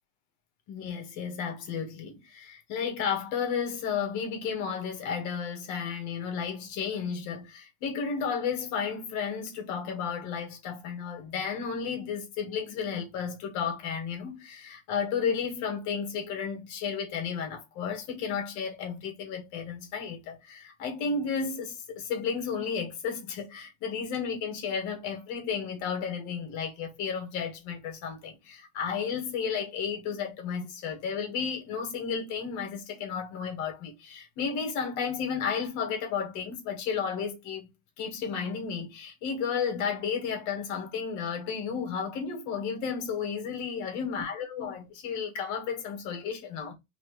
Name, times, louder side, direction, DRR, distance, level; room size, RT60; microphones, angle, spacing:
voice 1, 0.7-37.7 38.0-46.7, left 6 dB, 50° left, 1.7 m, -33 dB
4.2 x 3.1 x 3.2 m
supercardioid pair, 160°, 39 cm